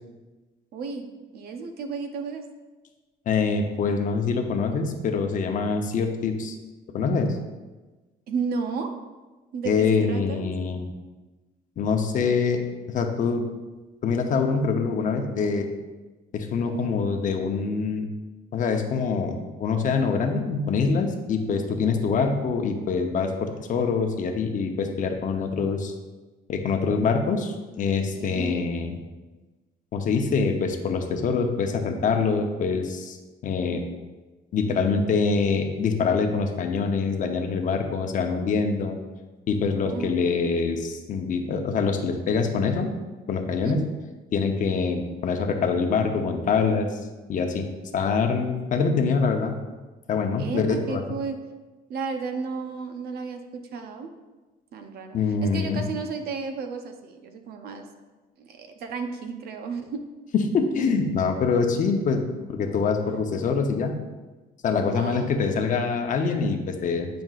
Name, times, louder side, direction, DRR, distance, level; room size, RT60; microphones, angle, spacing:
voice 1, 0.7-2.4 8.3-8.9 9.5-10.5 16.6-16.9 28.1-28.7 39.8-40.2 43.6-43.9 50.4-51.4 51.9-54.1 54.7-57.9 58.4-60.0 63.0-63.2 64.9-65.4, right 5 dB, 65° right, 6 dB, 0.8 m, -33 dB
voice 2, 3.3-6.5 6.9-7.3 9.6-10.9 11.8-12.6 12.9-13.4 14.0-15.7 16.3-18.1 18.5-25.9 26.5-29.0 29.9-33.2 33.4-33.8 34.5-39.0 39.5-42.9 43.3-43.8 44.3-47.0 47.3-47.7 47.9-49.6 50.1-51.1 55.1-55.8 60.3-62.2 62.5-63.9 64.6-67.1, left 5 dB, 50° left, 5 dB, 0.8 m, -25 dB
9.2 x 5.1 x 2.5 m, 1.2 s
cardioid pair, 110°, 17 cm